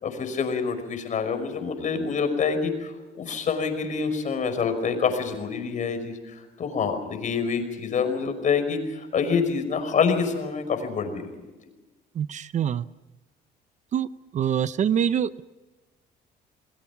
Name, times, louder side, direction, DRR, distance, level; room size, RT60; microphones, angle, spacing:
voice 1, 0.0-2.9 3.2-11.2, left 5 dB, 50° left, 7 dB, 5.4 m, -26 dB
voice 2, 12.2-12.9 13.9-14.1 14.3-15.4, right 9 dB, 45° right, 15 dB, 0.7 m, -25 dB
29.5 x 20.5 x 6.0 m, 1.1 s
cardioid pair, 110°, 17 cm